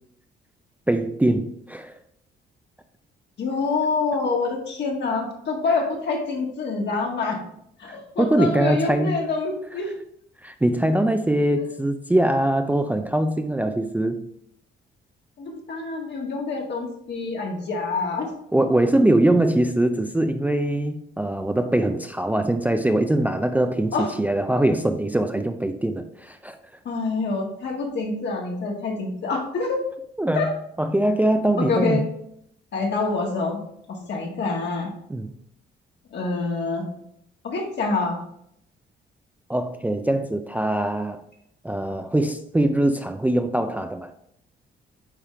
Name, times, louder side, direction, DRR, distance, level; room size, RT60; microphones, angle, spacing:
voice 1, 0.9-1.9 7.9-9.2 10.4-14.2 18.5-26.6 30.2-30.5 30.8-32.1 35.1-35.3 39.5-41.2 41.6-44.1, right 1 dB, 10° right, 6 dB, 0.4 m, -22 dB
voice 2, 3.4-7.4 7.8-9.9 15.4-18.3 23.9-24.1 26.9-29.8 30.3-30.5 31.6-32.1 32.7-33.6 33.9-34.9 36.1-36.9 37.4-38.2, left 3 dB, 60° left, 0 dB, 1.8 m, -26 dB
9.3 x 3.6 x 3.3 m, 0.73 s
cardioid pair, 90°, 20 cm